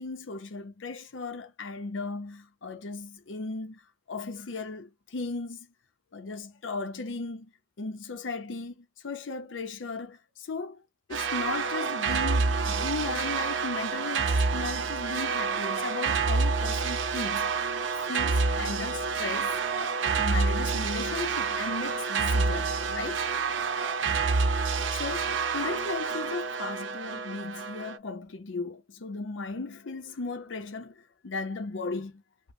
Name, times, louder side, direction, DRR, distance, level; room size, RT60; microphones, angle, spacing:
voice 1, 0.0-3.8 4.1-5.7 6.1-7.5 7.8-10.8 11.1-17.5 18.0-19.6 20.2-23.2 24.9-32.2, left 3 dB, 85° left, 0.6 m, -36 dB
sound 1, 11.1-28.0, right 4 dB, 80° right, 0.6 m, -28 dB
5.1 x 2.1 x 2.7 m
head